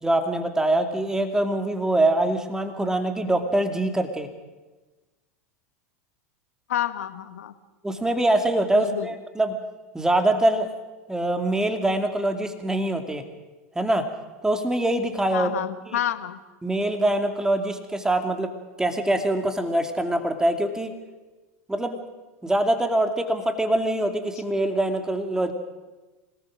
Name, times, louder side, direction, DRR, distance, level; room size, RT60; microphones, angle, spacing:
voice 1, 0.0-4.3 7.8-9.6 9.9-10.7 11.1-13.2 13.7-14.1 14.4-15.5 15.9-16.0 16.6-20.9 21.7-22.0 22.4-25.5, right 1 dB, 5° right, 6 dB, 2.4 m, -24 dB
voice 2, 6.7-7.5 8.7-9.1 15.3-16.4, left 11 dB, 75° left, 11 dB, 1.5 m, -29 dB
27.0 x 18.5 x 6.4 m, 1.2 s
hypercardioid pair, 90°, 8 cm